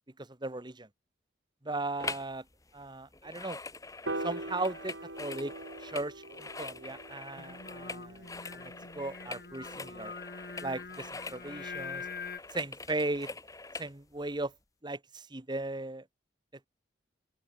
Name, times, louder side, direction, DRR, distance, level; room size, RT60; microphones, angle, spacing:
voice 1, 0.2-0.9 1.6-2.4 2.7-3.6 4.2-5.5 5.8-8.2 8.5-10.1 10.6-12.1 12.5-13.3 13.8-14.5 14.8-16.1, right 2 dB, 25° right, 1.3 m, -37 dB
sound 1, 2.0-2.4 2.6-13.9 14.4-14.5, left 3 dB, 20° left, 1.2 m, -44 dB
Piano, 4.1-10.4, right 2 dB, 90° right, 4.8 m, -43 dB
Singing, 7.4-12.4, left 5 dB, 55° left, 2.4 m, -44 dB
open air
head